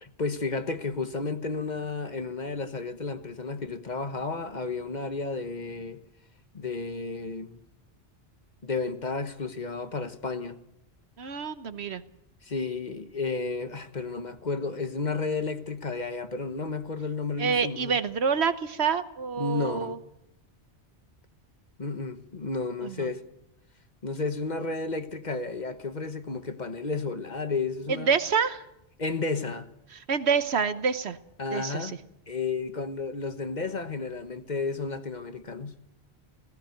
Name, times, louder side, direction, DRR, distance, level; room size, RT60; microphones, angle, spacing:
voice 1, 0.0-6.0 6.5-7.6 8.6-10.6 12.4-18.0 19.4-20.0 21.8-23.3 24.0-28.1 29.0-29.7 31.4-32.0 32.3-35.7, left 4 dB, 45° left, 1.3 m, -32 dB
voice 2, 11.2-12.0 17.4-20.0 22.8-23.1 27.9-28.6 30.1-31.2 31.5-31.9, right 6 dB, 75° right, 1.3 m, -27 dB
18.0 x 17.0 x 9.3 m
omnidirectional pair, 1.1 m